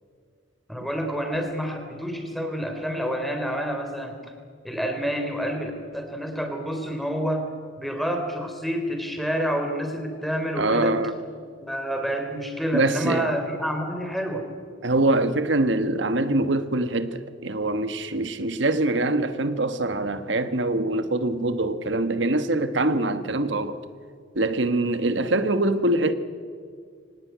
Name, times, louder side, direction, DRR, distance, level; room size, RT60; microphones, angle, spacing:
voice 1, 0.7-4.2 4.6-11.0 11.6-14.4, equal, ahead, 3.4 m, -28 dB
voice 2, 10.6-11.2 12.7-13.3 14.8-23.8 24.3-26.1, right 2 dB, 65° right, 1.4 m, -24 dB
24.0 x 18.5 x 9.3 m
head